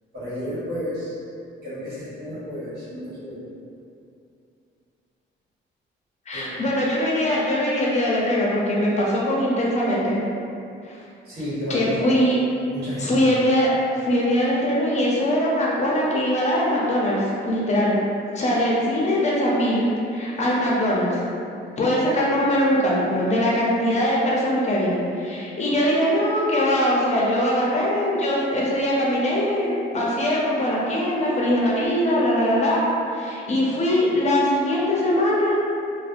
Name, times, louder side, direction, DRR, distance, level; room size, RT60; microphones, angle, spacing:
voice 1, 0.1-1.2 1.6-3.4 6.3-6.6 11.2-12.1 12.7-13.2, equal, 55° right, -11 dB, 1.4 m, -31 dB
voice 2, 6.3-10.2 10.9-11.0 11.7-12.4 13.0-13.7 14.0-18.0 18.3-21.2 21.8-35.6, equal, 35° left, -5 dB, 0.6 m, -22 dB
2.6 x 2.2 x 2.5 m, 2.6 s
cardioid pair, 90°, 20 cm